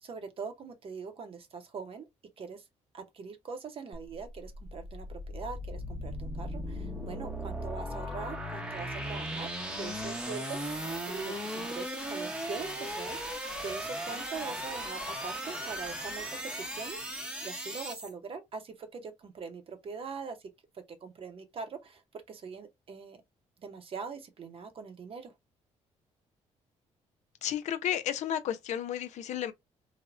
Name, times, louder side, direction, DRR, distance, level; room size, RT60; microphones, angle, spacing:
voice 1, 0.0-2.1 2.4-2.6 2.9-9.5 9.8-10.6 11.1-13.2 13.6-20.4 20.7-22.0 22.3-23.2 23.6-25.3, right 5 dB, 50° right, 0.7 m, -42 dB
sound 1, 3.9-18.1, equal, 5° right, 0.7 m, -37 dB
voice 2, 27.4-29.5, left 10 dB, 70° left, 0.4 m, -32 dB
3.2 x 2.1 x 2.4 m
cardioid pair, 105°, 12 cm